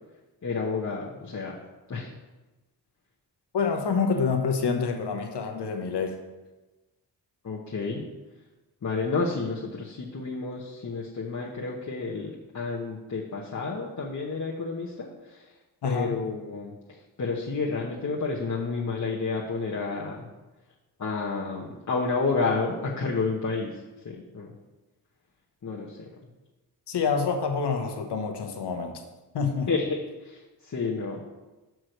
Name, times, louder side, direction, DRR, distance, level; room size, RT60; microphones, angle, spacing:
voice 1, 0.4-1.6 1.9-2.1 7.4-8.0 8.8-15.5 15.8-20.3 21.0-23.8 24.0-24.5 25.6-26.1 29.7-31.2, left 4 dB, 45° left, -4 dB, 1.0 m, -30 dB
voice 2, 3.5-6.2 15.8-16.2 26.9-29.0 29.3-29.7, left 5 dB, 75° left, 4 dB, 1.0 m, -27 dB
6.3 x 4.6 x 6.5 m, 1.1 s
cardioid pair, 80°, 41 cm